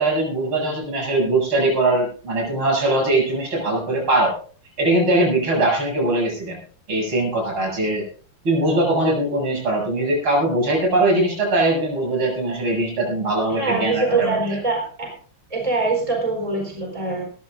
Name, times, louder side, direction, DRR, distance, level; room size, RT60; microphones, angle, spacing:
voice 1, 0.0-4.3 4.8-6.6 6.9-8.1 8.4-14.6, right 2 dB, 70° right, -1 dB, 8.5 m, -21 dB
voice 2, 13.5-15.1 15.5-17.2, right 3 dB, 15° right, 0 dB, 4.6 m, -23 dB
21.0 x 14.5 x 2.6 m, 0.42 s
omnidirectional pair, 2.4 m